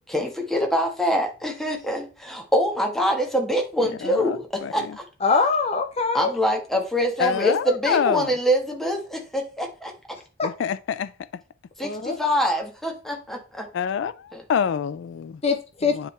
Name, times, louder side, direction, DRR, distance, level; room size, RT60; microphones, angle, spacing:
voice 1, 0.1-5.0 6.1-9.9 11.8-13.7, equal, ahead, 1.3 m, -24 dB
voice 2, 3.8-5.0 7.2-8.3 10.4-11.1 13.7-15.4 15.9-16.1, left 7 dB, 70° left, 0.3 m, -27 dB
voice 3, 5.2-6.3 10.4-10.5 11.8-12.2 15.4-15.9, left 4 dB, 30° left, 0.6 m, -23 dB
10.0 x 3.5 x 3.2 m
head